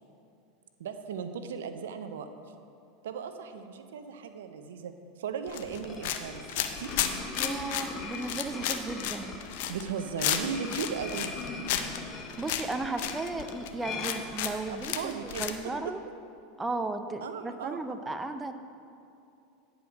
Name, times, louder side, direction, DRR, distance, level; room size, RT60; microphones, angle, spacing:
voice 1, 0.8-2.3 3.0-4.9 5.2-6.9 9.7-11.3 14.7-15.5 17.2-18.0, right 6 dB, 80° right, 8 dB, 0.6 m, -37 dB
sound 1, 5.5-15.6, left 10 dB, 65° left, 0.6 m, -33 dB
sound 2, 5.7-15.0, left 3 dB, 30° left, 1.2 m, -41 dB
voice 2, 7.4-9.4 12.4-16.0 16.6-18.5, right 3 dB, 15° right, 8 dB, 0.5 m, -35 dB
10.0 x 4.8 x 6.1 m, 2.6 s
hypercardioid pair, 90°, 0 cm